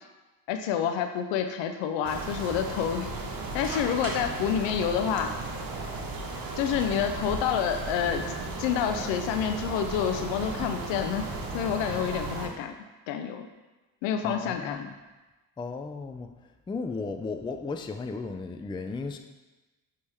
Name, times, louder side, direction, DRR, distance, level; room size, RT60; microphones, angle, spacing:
voice 1, 0.5-3.1 3.5-5.3 6.6-12.7 13.1-13.5 14.0-14.9, left 8 dB, 70° left, 7 dB, 0.7 m, -28 dB
sound 1, 2.0-12.5, right 3 dB, 45° right, 1.2 m, -35 dB
voice 2, 14.2-14.9 15.6-16.3 16.7-19.2, left 4 dB, 10° left, 6 dB, 0.4 m, -35 dB
9.2 x 3.3 x 3.4 m, 1.1 s
hypercardioid pair, 50°, 47 cm